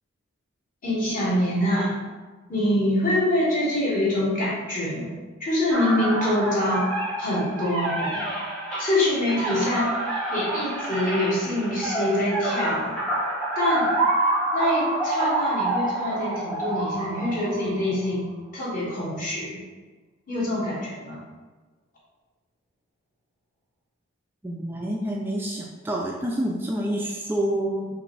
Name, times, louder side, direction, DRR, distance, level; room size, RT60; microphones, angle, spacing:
voice 1, 0.8-1.9 2.5-6.9 7.2-8.2 8.8-10.0 10.3-13.0 13.5-13.9 14.5-18.3 18.5-19.6 20.3-21.2, left 1 dB, 45° left, -7 dB, 1.4 m, -25 dB
sound 1, 5.7-18.0, right 2 dB, 5° left, 0.9 m, -28 dB
voice 2, 24.4-27.9, right 1 dB, 10° right, -2 dB, 0.3 m, -28 dB
5.0 x 2.6 x 3.2 m, 1.3 s
head